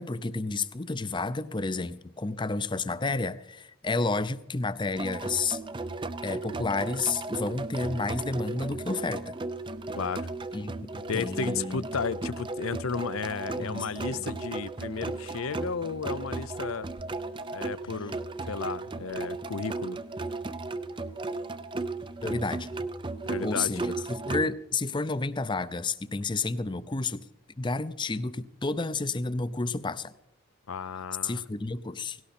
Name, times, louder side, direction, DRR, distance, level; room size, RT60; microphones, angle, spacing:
voice 1, 0.0-5.6 6.2-9.3 10.5-11.8 13.6-14.2 22.2-22.7 23.4-27.3 27.6-30.1 31.2-32.2, left 3 dB, 20° left, 0.6 m, -31 dB
Ciung Wulung, 5.0-24.5, right 3 dB, 20° right, 0.5 m, -35 dB
voice 2, 10.0-10.3 11.1-16.9 17.5-18.2 18.4-20.0 23.2-24.0 30.7-31.4, left 5 dB, 75° left, 0.6 m, -34 dB
18.0 x 17.5 x 4.3 m
head